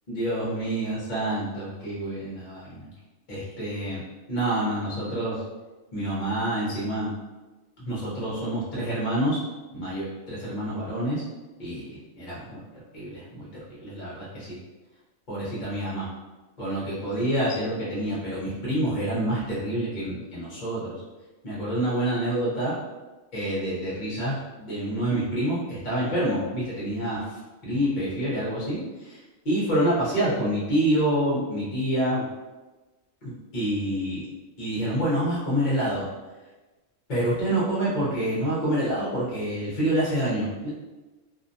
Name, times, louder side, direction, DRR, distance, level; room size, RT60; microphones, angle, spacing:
voice 1, 0.1-2.8 3.3-4.0 4.3-5.4 5.9-7.1 7.8-9.4 9.7-11.2 11.6-11.9 12.2-12.6 12.9-13.5 13.8-14.6 15.3-16.1 16.6-21.0 21.4-22.7 23.3-27.2 27.6-29.2 29.4-32.2 33.5-34.3 34.6-36.0 37.1-40.7, right 1 dB, 45° left, -8 dB, 0.8 m, -27 dB
2.5 x 2.1 x 2.6 m, 1.2 s
omnidirectional pair, 1.3 m